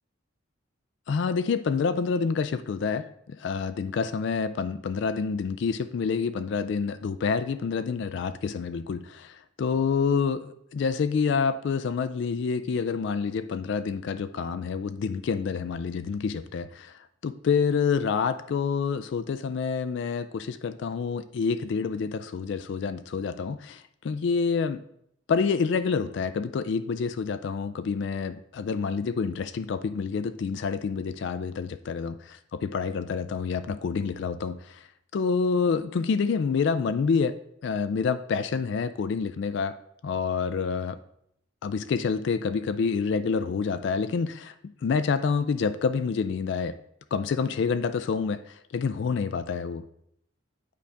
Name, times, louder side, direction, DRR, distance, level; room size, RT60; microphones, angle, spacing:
voice 1, 1.1-16.9 17.2-24.8 25.3-34.9 35.1-39.8 40.0-41.0 41.6-44.5 44.8-46.8 47.1-49.8, left 5 dB, 60° left, 12 dB, 0.3 m, -28 dB
8.5 x 5.0 x 3.4 m, 0.73 s
head